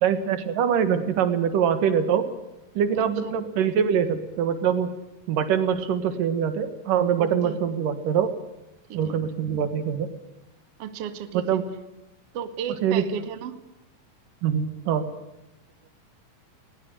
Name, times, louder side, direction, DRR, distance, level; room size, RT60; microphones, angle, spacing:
voice 1, 0.0-2.3 2.7-4.9 5.3-8.3 8.9-10.1 11.3-11.7 12.8-13.0 14.4-15.1, right 8 dB, 85° right, 10 dB, 3.2 m, -24 dB
voice 2, 3.0-3.4 7.2-7.6 8.9-9.2 10.8-11.6 12.3-13.6, right 8 dB, 55° right, 10 dB, 2.0 m, -34 dB
20.0 x 19.0 x 9.4 m, 0.91 s
omnidirectional pair, 3.8 m